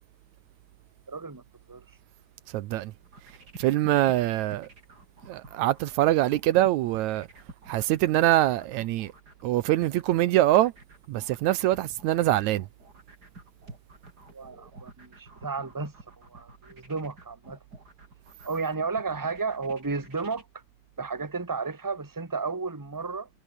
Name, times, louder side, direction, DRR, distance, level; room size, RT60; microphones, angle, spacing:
voice 1, 1.1-1.4 1.7-1.8 14.3-17.6 18.4-20.5 21.0-23.3, right 4 dB, 5° right, 1.8 m, -33 dB
voice 2, 2.5-2.9 3.6-4.7 5.3-7.3 7.7-9.1 9.4-10.7 11.1-12.7, right 15 dB, 80° right, 2.1 m, -24 dB
sound 1, 3.0-20.4, right 2 dB, 30° right, 6.0 m, -49 dB
omnidirectional pair, 3.4 m